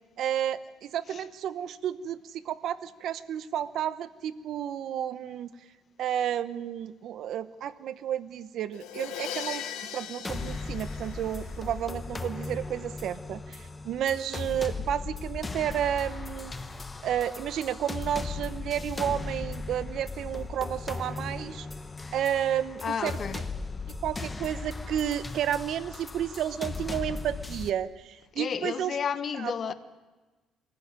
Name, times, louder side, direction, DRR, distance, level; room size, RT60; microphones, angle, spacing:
voice 1, 0.2-5.5 6.0-9.6 9.9-16.6 17.0-21.7 22.1-23.2 24.0-29.0 29.4-29.7, right 10 dB, 60° right, 1.0 m, -31 dB
Crash cymbal, 8.7-11.7, left 9 dB, 90° left, 2.5 m, -39 dB
sound 1, 10.2-27.7, left 3 dB, 20° left, 1.1 m, -37 dB
voice 2, 22.8-23.4 28.3-29.7, left 7 dB, 40° left, 1.2 m, -32 dB
22.0 x 15.0 x 9.7 m
cardioid pair, 120°, 0 cm